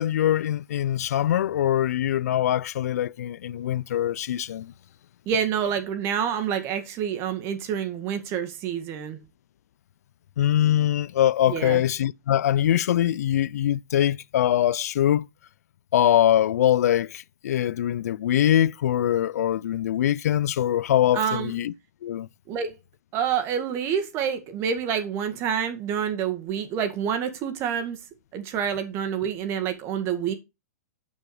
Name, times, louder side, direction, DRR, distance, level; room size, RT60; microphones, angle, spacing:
voice 1, 0.0-4.7 10.4-15.3 15.9-21.7 22.0-22.3, left 11 dB, 70° left, 0.5 m, -23 dB
voice 2, 5.3-9.2 11.5-11.8 21.1-21.6 22.5-22.7 23.1-28.0 28.3-30.3, right 8 dB, 30° right, 1.9 m, -27 dB
9.2 x 6.1 x 4.9 m
hypercardioid pair, 155°, 9 cm